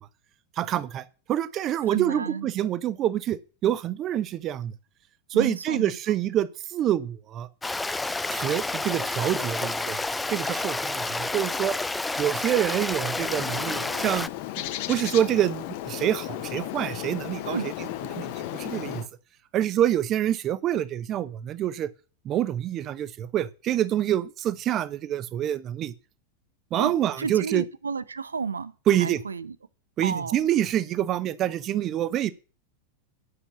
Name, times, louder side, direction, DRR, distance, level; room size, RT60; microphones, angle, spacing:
voice 1, 0.6-4.7 5.3-7.5 8.3-10.0 10.3-11.8 12.2-14.3 14.9-17.6 18.1-19.0 19.5-21.9 22.2-25.9 26.7-27.6 28.9-29.2 30.0-32.3, right 11 dB, 30° right, 0.8 m, -26 dB
voice 2, 1.9-2.5 5.3-6.0 17.4-17.7 26.8-28.7 29.0-29.6 30.0-30.5, right 5 dB, 75° right, 0.7 m, -32 dB
Stream, 7.6-14.3, left 2 dB, 10° left, 0.5 m, -30 dB
Bird, 13.1-19.1, left 14 dB, 45° left, 1.1 m, -35 dB
9.8 x 6.9 x 7.1 m
figure-of-eight pair, 90°, 0 cm